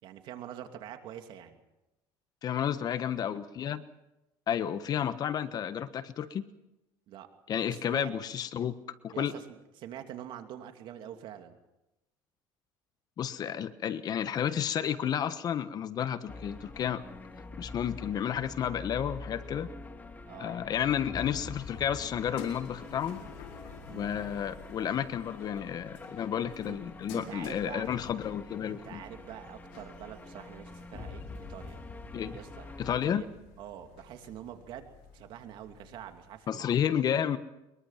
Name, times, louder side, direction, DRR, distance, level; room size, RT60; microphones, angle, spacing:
voice 1, 0.0-1.6 7.1-7.3 7.7-8.1 9.1-11.6 20.2-20.6 23.9-24.1 26.7-26.8 27.1-27.9 28.6-31.8 32.3-32.7 33.0-33.3 33.6-34.9 35.1-36.7, right 10 dB, 65° right, 6 dB, 2.8 m, -45 dB
voice 2, 2.4-3.8 4.5-6.4 7.5-8.7 9.0-9.3 13.2-17.0 17.5-19.7 20.4-23.2 23.9-29.0 32.1-32.4 32.8-33.2 36.5-37.4, left 9 dB, 45° left, 12 dB, 1.3 m, -31 dB
sound 1, 16.3-33.0, left 3 dB, 20° left, 2.1 m, -46 dB
sound 2, 21.6-36.4, left 6 dB, 80° left, 4.6 m, -50 dB
23.0 x 22.0 x 5.9 m, 0.94 s
supercardioid pair, 105°, 9 cm